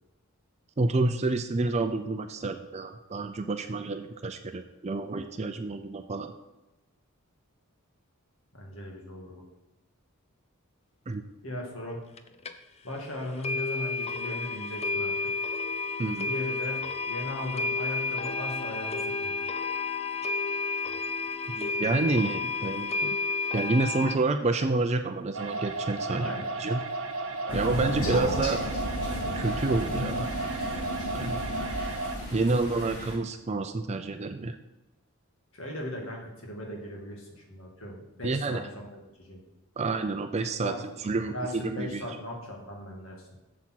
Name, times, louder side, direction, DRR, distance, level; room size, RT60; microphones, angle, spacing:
voice 1, 0.8-6.3 11.1-11.2 16.0-16.3 21.6-23.2 23.5-26.3 26.6-26.8 27.5-28.6 29.3-30.3 31.1-31.5 32.3-34.6 38.2-38.6 39.8-40.7 41.0-42.1, right 3 dB, 30° right, 7 dB, 0.4 m, -29 dB
voice 2, 8.5-9.4 11.4-12.0 12.8-15.1 16.2-19.5 26.1-26.5 27.5-28.0 35.5-39.4 40.6-40.9 41.3-43.3, left 1 dB, 60° left, -1 dB, 2.2 m, -38 dB
sound 1, 12.2-12.3 12.5-12.6 12.9-13.0 13.4-24.2, left 3 dB, 30° left, 0.5 m, -31 dB
sound 2, 25.3-32.2, right 3 dB, 60° right, 1.0 m, -34 dB
Crow, 27.5-33.1, left 1 dB, 75° left, 3.7 m, -34 dB
7.9 x 7.4 x 4.6 m, 1.0 s
head